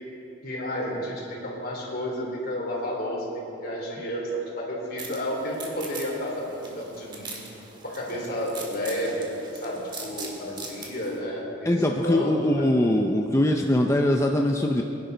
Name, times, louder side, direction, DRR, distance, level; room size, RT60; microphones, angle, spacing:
voice 1, 0.4-7.4 7.8-9.3 9.6-12.7, equal, 55° left, -2 dB, 3.3 m, -31 dB
sound 1, 5.0-11.2, right 3 dB, 25° right, 2.0 m, -41 dB
voice 2, 11.6-14.8, left 1 dB, 15° left, 2 dB, 0.5 m, -22 dB
22.0 x 11.0 x 3.9 m, 3.0 s
head